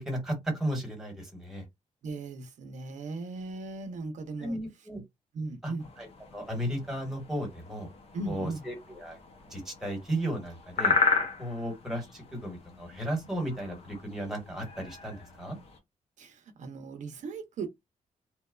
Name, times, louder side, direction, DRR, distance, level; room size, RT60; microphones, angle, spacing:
voice 1, 0.0-1.6 4.4-5.0 5.6-5.7 6.3-7.9 8.3-9.2 9.5-10.9 11.4-15.6, right 1 dB, 5° right, 1.1 m, -34 dB
voice 2, 2.0-4.9 5.3-5.9 8.1-8.7 16.2-17.7, right 3 dB, 70° right, 0.5 m, -38 dB
sound 1, 5.8-15.8, left 4 dB, 50° left, 0.6 m, -35 dB
2.8 x 2.1 x 2.2 m
wide cardioid pair, 170°, 13 cm